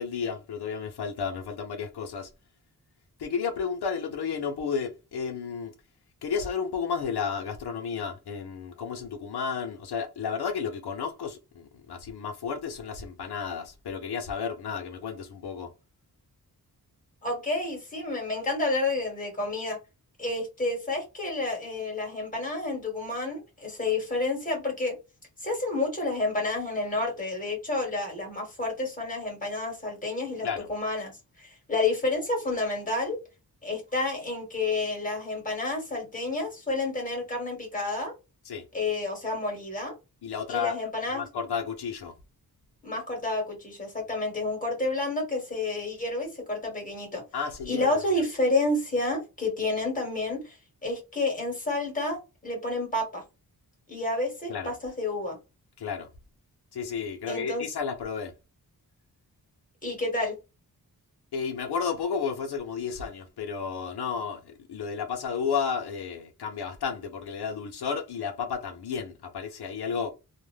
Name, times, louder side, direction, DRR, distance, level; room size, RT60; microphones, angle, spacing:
voice 1, 0.0-2.3 3.2-5.7 6.2-15.7 30.4-30.7 38.4-38.6 40.2-40.8 41.1-42.1 47.3-48.0 54.5-54.7 55.8-56.1 56.7-58.3 61.3-64.4 64.7-70.1, left 6 dB, 85° left, 0.7 m, -32 dB
voice 2, 17.2-19.8 20.2-25.0 25.4-31.1 31.4-33.2 33.6-38.1 38.7-39.9 40.5-41.3 42.8-47.2 47.6-53.2 53.9-55.4 57.3-57.7 59.8-60.3, left 2 dB, 20° left, 1.3 m, -30 dB
2.5 x 2.1 x 3.1 m
wide cardioid pair, 175°, 38 cm